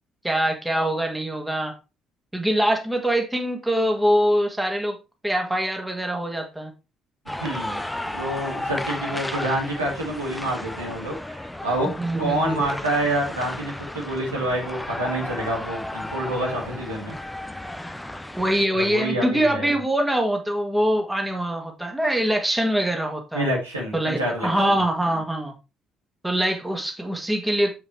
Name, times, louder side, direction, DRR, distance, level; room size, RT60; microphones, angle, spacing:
voice 1, 0.2-1.8 2.3-5.0 5.2-6.7 11.8-12.6 18.4-23.5 23.9-25.5 26.2-27.7, right 1 dB, 10° right, 1.9 m, -23 dB
sound 1, 7.3-18.7, left 1 dB, 5° left, 0.8 m, -34 dB
voice 2, 7.4-7.8 8.1-11.9 12.2-17.2 18.7-19.7 23.3-24.6, right 1 dB, 90° right, 2.2 m, -27 dB
7.4 x 5.9 x 3.3 m
figure-of-eight pair, 45°, 0 cm